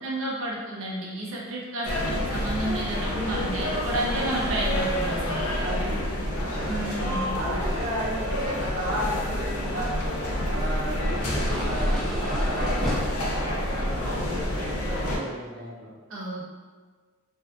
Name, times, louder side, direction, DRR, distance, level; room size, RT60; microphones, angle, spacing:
voice 1, 0.0-5.5 6.7-7.3 16.1-16.5, right 1 dB, 70° right, -3 dB, 0.6 m, -31 dB
sound 1, 1.8-15.2, left 1 dB, 90° left, 0.5 m, -28 dB
voice 2, 5.6-6.8 7.3-9.9 10.4-15.9, equal, 45° right, -9 dB, 0.9 m, -34 dB
sound 2, 9.6-15.1, equal, ahead, 0.4 m, -33 dB
2.6 x 2.2 x 2.3 m, 1.4 s
head